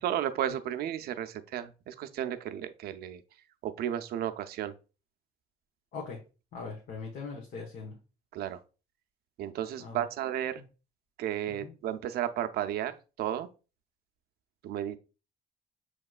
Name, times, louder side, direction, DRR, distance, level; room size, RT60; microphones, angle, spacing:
voice 1, 0.0-3.2 3.6-4.7 8.3-8.6 9.4-10.6 11.2-13.5 14.6-15.0, right 11 dB, 65° right, 0.5 m, -33 dB
voice 2, 6.5-8.0 9.8-10.0 11.5-11.7, left 4 dB, 60° left, 1.2 m, -40 dB
6.4 x 2.9 x 2.4 m
cardioid pair, 110°, 17 cm